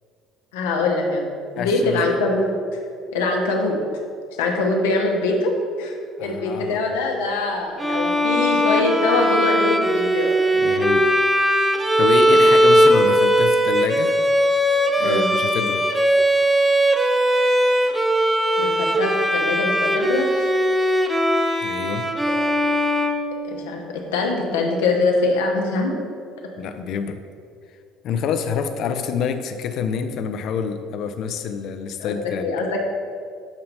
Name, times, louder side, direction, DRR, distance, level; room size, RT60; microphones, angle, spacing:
voice 1, 0.5-1.3 1.6-2.5 3.1-3.8 4.4-10.3 12.3-12.5 15.0-15.3 18.6-20.3 22.3-22.4 23.4-26.0 32.0-32.8, left 3 dB, 85° left, 1 dB, 0.8 m, -23 dB
voice 2, 1.6-2.3 6.2-6.9 10.5-11.1 12.0-14.2 15.0-15.9 21.6-22.1 26.6-27.2 28.0-32.5, left 6 dB, 60° left, 8 dB, 0.5 m, -27 dB
Bowed string instrument, 7.8-23.8, equal, 10° right, 0.5 m, -19 dB
7.0 x 2.8 x 5.2 m, 2.2 s
hypercardioid pair, 65°, 0 cm